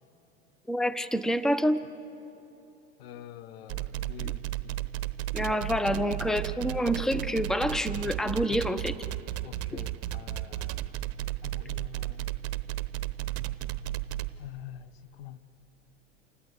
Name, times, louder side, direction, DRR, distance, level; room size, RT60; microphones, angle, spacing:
voice 1, 0.7-1.8 5.3-8.9 9.7-9.8, equal, ahead, 0.8 m, -27 dB
voice 2, 3.0-4.7 8.5-8.7 9.4-11.1 11.4-12.3 14.4-15.4, left 10 dB, 70° left, 1.2 m, -46 dB
sound 1, 3.7-14.3, right 15 dB, 50° right, 1.0 m, -33 dB
29.0 x 18.5 x 8.2 m
hypercardioid pair, 90°, 32 cm